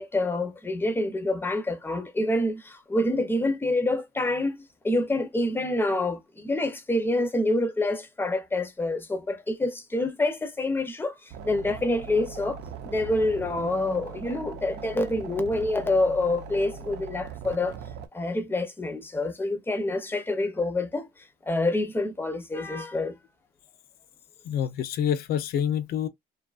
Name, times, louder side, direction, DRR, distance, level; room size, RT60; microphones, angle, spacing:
voice 1, 0.0-17.8 18.1-21.1 21.4-23.1, left 2 dB, 10° left, 0.6 m, -27 dB
sound 1, 11.3-18.1, right 6 dB, 80° right, 0.6 m, -40 dB
voice 2, 24.4-26.1, left 9 dB, 65° left, 0.5 m, -27 dB
2.6 x 2.3 x 2.4 m
cardioid pair, 110°, 17 cm